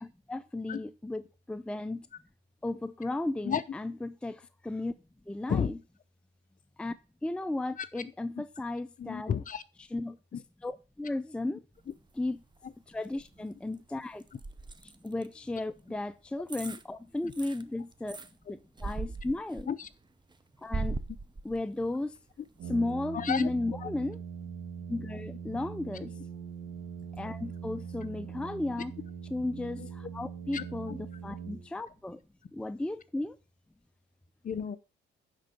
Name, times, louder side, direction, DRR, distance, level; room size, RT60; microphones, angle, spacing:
voice 1, 0.0-2.1 2.6-4.9 5.3-5.8 6.8-7.0 7.2-9.3 9.9-10.2 10.6-11.6 12.2-12.4 12.9-14.3 14.8-18.2 18.5-19.7 20.6-21.0 21.4-22.2 22.7-24.2 24.9-26.1 27.2-28.9 29.3-32.2 32.5-33.4, left 2 dB, 5° left, 0.4 m, -34 dB
voice 2, 9.0-9.6 10.3-10.4 19.7-19.9 23.1-23.5 23.8-23.9 29.8-30.1 30.5-30.6 34.4-34.8, left 7 dB, 40° left, 0.8 m, -32 dB
sound 1, 11.8-12.7 13.0-15.3 15.9-16.0 16.5-16.8 17.2-18.3 18.8-19.9 20.3-21.9 22.3-22.4, right 3 dB, 20° right, 0.8 m, -39 dB
Brass instrument, 22.6-32.1, right 6 dB, 90° right, 1.9 m, -42 dB
9.9 x 3.9 x 6.6 m
cardioid pair, 90°, 20 cm